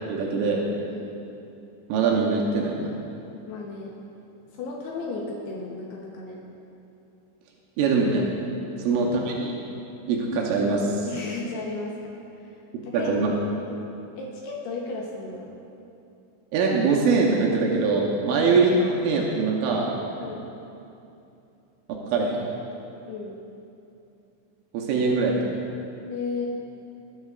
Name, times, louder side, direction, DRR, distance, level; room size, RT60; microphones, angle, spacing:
voice 1, 0.1-0.6 1.9-2.9 7.8-8.3 8.8-9.6 10.1-11.1 12.9-13.3 16.5-19.9 22.0-22.4 24.7-25.6, right 4 dB, 85° right, -2 dB, 3.4 m, -23 dB
voice 2, 3.5-3.9 4.5-6.4 8.7-8.9 11.1-12.0 12.4-12.5 12.8-13.1 14.1-15.5 18.3-18.5 20.2-20.4 23.1-23.4 26.1-26.5, left 3 dB, 75° left, -2 dB, 2.5 m, -34 dB
18.5 x 9.2 x 2.4 m, 2.7 s
omnidirectional pair, 5.6 m